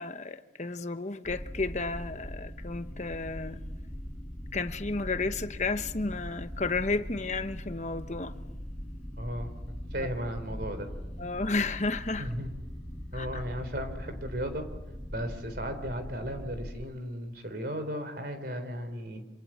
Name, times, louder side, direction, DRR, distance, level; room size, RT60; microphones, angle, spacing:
voice 1, 0.0-3.6 4.5-8.3 10.0-10.1 11.2-12.4 13.1-13.4, left 3 dB, 35° left, 1.1 m, -32 dB
sound 1, 1.2-16.7, equal, 5° left, 4.6 m, -41 dB
voice 2, 9.2-10.9 12.2-12.5 13.1-14.7 15.1-19.2, equal, 55° right, 3.8 m, -36 dB
27.0 x 26.5 x 7.5 m
head